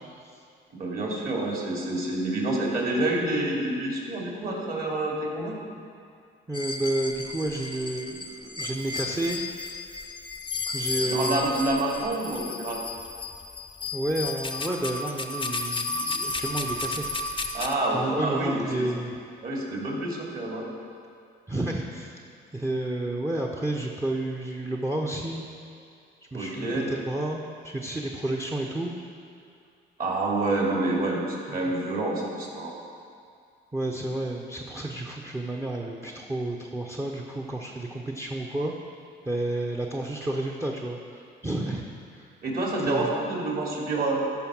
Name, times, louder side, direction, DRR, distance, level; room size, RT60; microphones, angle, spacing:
voice 1, 0.8-5.6 11.0-12.8 17.5-18.9 19.4-20.7 26.3-26.9 30.0-32.8 42.4-44.2, right 2 dB, 45° right, -2 dB, 2.4 m, -28 dB
sound 1, 6.5-17.7, left 3 dB, 25° left, 0.7 m, -33 dB
voice 2, 6.5-9.4 10.7-11.5 13.9-17.1 17.9-19.1 21.5-22.1 22.5-25.4 26.3-28.9 31.5-31.7 33.7-38.7 39.2-41.8 42.1-42.3 42.9-43.1, right 1 dB, 15° right, -1 dB, 0.8 m, -31 dB
13.0 x 4.6 x 6.1 m, 2.4 s
cardioid pair, 90°, 20 cm